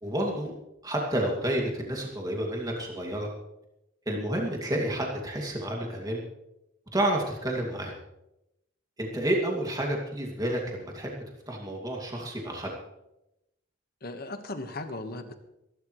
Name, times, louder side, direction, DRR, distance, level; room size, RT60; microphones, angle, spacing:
voice 1, 0.0-0.5 0.8-3.3 4.1-6.2 6.9-7.9 9.0-12.7, right 1 dB, 20° right, -1 dB, 2.4 m, -30 dB
voice 2, 14.0-15.3, left 2 dB, 50° left, 7 dB, 1.4 m, -37 dB
25.0 x 12.0 x 3.2 m, 0.88 s
head